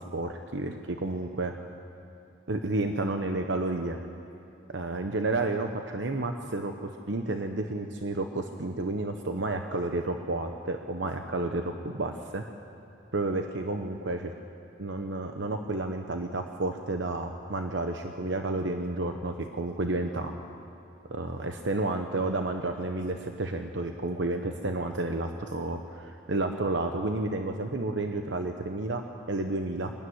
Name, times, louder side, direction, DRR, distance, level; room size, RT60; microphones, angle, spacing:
voice 1, 0.1-1.5 2.5-4.0 4.7-6.7 7.1-12.4 13.1-14.3 14.8-20.3 21.1-29.9, right 2 dB, 70° right, 5 dB, 0.9 m, -31 dB
22.5 x 12.5 x 9.5 m, 2.7 s
head